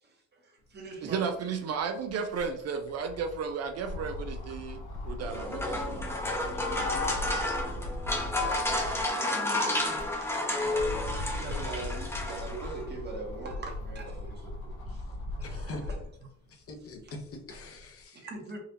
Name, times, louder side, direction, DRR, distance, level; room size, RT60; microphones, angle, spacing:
voice 1, 0.0-1.3 6.6-7.1 9.1-10.9 11.3-16.0 17.0-17.1 18.2-18.6, right 3 dB, 35° right, 0 dB, 1.1 m, -43 dB
sound 1, 1.0-1.1 1.4-9.2 9.7-16.2 16.7-17.8, left 2 dB, 80° left, 0.9 m, -39 dB
voice 2, 1.0-6.1, right 6 dB, 55° right, 7 dB, 0.4 m, -34 dB
sound 2, 5.2-12.8, left 2 dB, 10° left, 0.8 m, -31 dB
voice 3, 15.4-15.8 16.5-18.3, left 2 dB, 50° left, 3 dB, 0.8 m, -44 dB
3.8 x 2.5 x 2.8 m, 0.72 s
cardioid pair, 90°, 30 cm